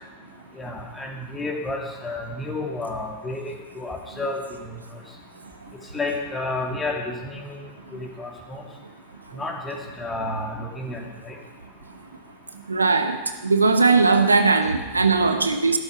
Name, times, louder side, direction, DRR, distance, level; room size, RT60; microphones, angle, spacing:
voice 1, 0.6-4.8 5.9-7.6 7.9-8.6 9.3-11.4, left 2 dB, 15° left, 1 dB, 2.5 m, -31 dB
voice 2, 12.7-13.2 13.4-15.8, right 4 dB, 80° right, 8 dB, 1.0 m, -19 dB
13.0 x 12.0 x 5.9 m, 1.2 s
figure-of-eight pair, 90°, 0 cm